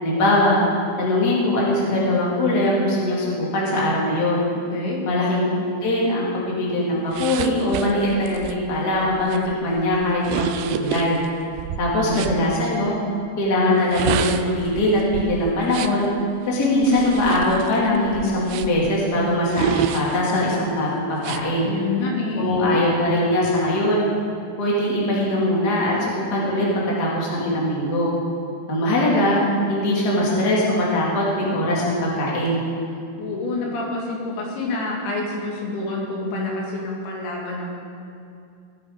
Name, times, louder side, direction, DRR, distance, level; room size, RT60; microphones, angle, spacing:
voice 1, 0.0-0.6 1.0-4.5 5.1-5.4 5.7-11.2 11.8-13.0 13.4-16.0 16.5-21.7 22.4-24.0 24.6-26.7 27.0-28.1 28.7-29.4 29.7-32.6, left 1 dB, 30° left, -5 dB, 2.4 m, -21 dB
voice 2, 4.7-5.0 12.0-12.2 21.7-22.5 33.2-37.8, left 2 dB, 75° left, -2 dB, 4.1 m, -27 dB
sound 1, 7.1-12.4 13.7-16.1 16.8-18.9 19.5-20.6 21.2-21.4, right 10 dB, 85° right, 2.6 m, -30 dB
18.5 x 7.8 x 5.2 m, 2.5 s
omnidirectional pair, 4.7 m